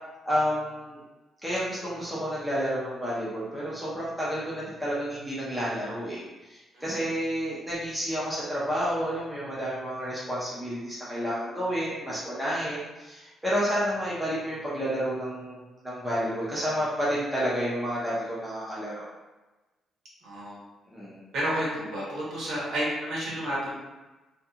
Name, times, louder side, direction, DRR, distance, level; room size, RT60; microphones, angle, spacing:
voice 1, 0.2-1.0 1.4-6.2 6.5-19.1 20.9-21.2, equal, ahead, -9 dB, 0.5 m, -30 dB
voice 2, 6.7-7.1 20.2-20.6 21.3-23.7, right 1 dB, 55° right, -6 dB, 1.0 m, -31 dB
2.7 x 2.3 x 2.4 m, 1.1 s
cardioid pair, 180°, 0 cm